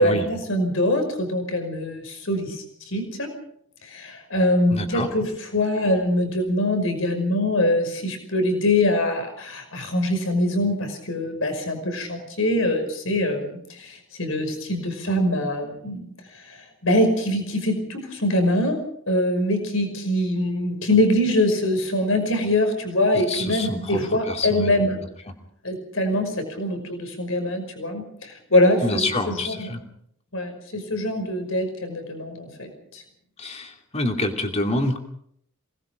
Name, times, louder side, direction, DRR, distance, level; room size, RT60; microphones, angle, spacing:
voice 1, 0.0-3.4 3.8-16.1 16.3-18.8 19.1-25.0 25.6-29.7 30.3-33.0, left 1 dB, 75° left, 5 dB, 5.6 m, -23 dB
voice 2, 4.7-5.1 23.1-24.8 28.8-29.8 33.4-35.0, left 2 dB, 30° left, 3 dB, 2.8 m, -27 dB
27.5 x 19.5 x 5.2 m, 0.68 s
head